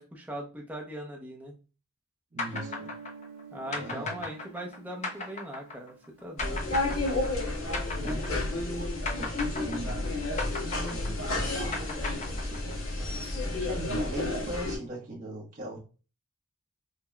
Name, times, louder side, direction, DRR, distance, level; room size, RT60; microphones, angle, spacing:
voice 1, 0.0-1.6 3.5-5.9 6.2-6.7, right 1 dB, 10° right, -1 dB, 0.6 m, -40 dB
voice 2, 2.3-2.9 3.7-4.2 8.0-8.3 9.2-10.2 10.9-12.8 13.5-15.8, right 1 dB, 40° right, -5 dB, 1.1 m, -41 dB
sound 1, 2.4-8.8 9.1-12.9, left 3 dB, 35° left, 0.6 m, -36 dB
Guitar, 2.5-7.1, right 4 dB, 65° right, 0.5 m, -48 dB
sound 2, 6.4-14.8, left 2 dB, 85° left, 1.6 m, -31 dB
5.5 x 2.1 x 2.3 m, 0.35 s
head